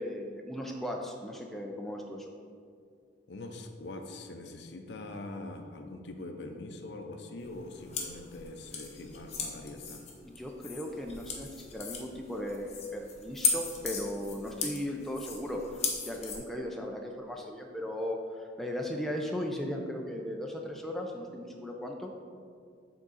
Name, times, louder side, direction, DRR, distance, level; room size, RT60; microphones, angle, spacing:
voice 1, 0.0-2.3 10.2-22.1, equal, ahead, 0 dB, 0.3 m, -37 dB
voice 2, 3.3-10.0, left 2 dB, 60° left, 5 dB, 0.5 m, -43 dB
sound 1, 7.4-16.4, left 5 dB, 35° left, 0.8 m, -36 dB
7.4 x 3.7 x 4.0 m, 2.2 s
head